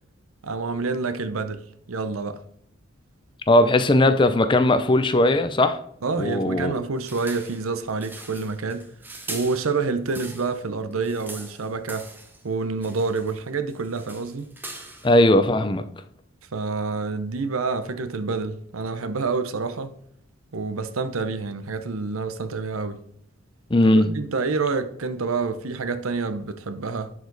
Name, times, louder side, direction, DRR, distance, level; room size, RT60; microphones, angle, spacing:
voice 1, 0.4-2.4 6.0-8.9 9.3-12.1 12.4-14.5 16.5-19.9 20.5-23.0 23.8-27.1, right 4 dB, 85° right, 0.7 m, -28 dB
voice 2, 3.5-5.8 6.2-6.8 15.0-15.8 23.7-24.1, left 1 dB, 25° left, 0.5 m, -18 dB
sound 1, 7.0-10.6 10.9-12.4 12.8-13.4 13.7-15.2, right 2 dB, 10° right, 0.8 m, -41 dB
10.5 x 5.0 x 4.0 m
head